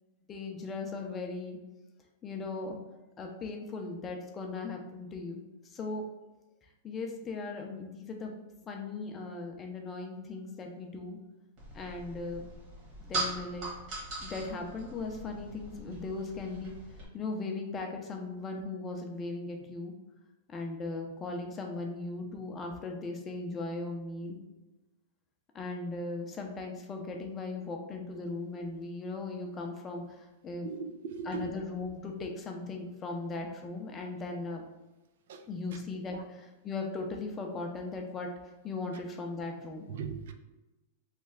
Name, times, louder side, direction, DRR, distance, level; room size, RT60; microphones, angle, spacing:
voice 1, 0.3-1.6 2.2-2.8 3.2-6.0 6.8-8.4 8.6-11.2 11.7-12.5 13.0-13.7 14.2-16.7 17.1-19.9 20.5-24.4 25.5-30.7 31.3-34.6 35.5-38.3 38.6-39.9, left 3 dB, 20° left, 0.5 m, -38 dB
sound 1, 11.6-17.1, right 2 dB, 40° right, 1.4 m, -40 dB
voice 2, 30.6-31.6 35.3-35.4 35.7-35.8 36.1-36.2 39.9-40.3, right 5 dB, 70° right, 0.3 m, -39 dB
3.2 x 2.2 x 3.6 m
supercardioid pair, 140°, 0 cm